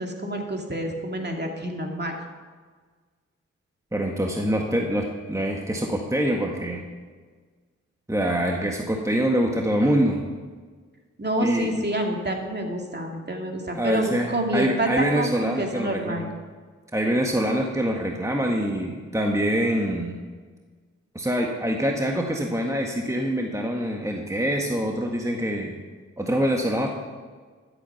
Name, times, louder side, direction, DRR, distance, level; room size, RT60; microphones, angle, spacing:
voice 1, 0.0-2.2 11.2-16.3, right 1 dB, 35° right, 2 dB, 2.5 m, -28 dB
voice 2, 3.9-6.8 8.1-10.2 11.4-11.7 13.7-16.3 16.9-20.2 21.1-25.8 26.2-27.0, equal, 10° right, 1 dB, 1.7 m, -25 dB
13.0 x 8.4 x 5.8 m, 1.5 s
supercardioid pair, 40°, 31 cm